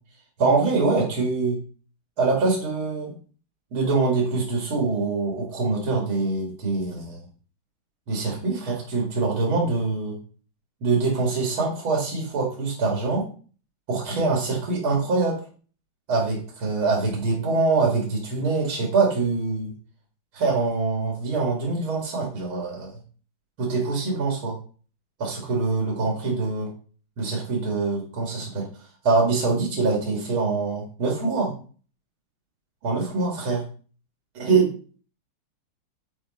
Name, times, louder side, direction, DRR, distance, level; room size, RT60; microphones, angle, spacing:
voice 1, 0.4-1.6 2.2-3.1 3.7-7.2 8.1-10.2 10.8-13.3 13.9-15.4 16.1-19.7 20.3-22.9 23.6-24.6 25.2-26.7 27.2-28.7 29.0-31.5 32.8-33.6 34.3-34.7, right 3 dB, 80° right, -1 dB, 3.0 m, -24 dB
10.5 x 5.0 x 4.3 m, 0.41 s
omnidirectional pair, 2.2 m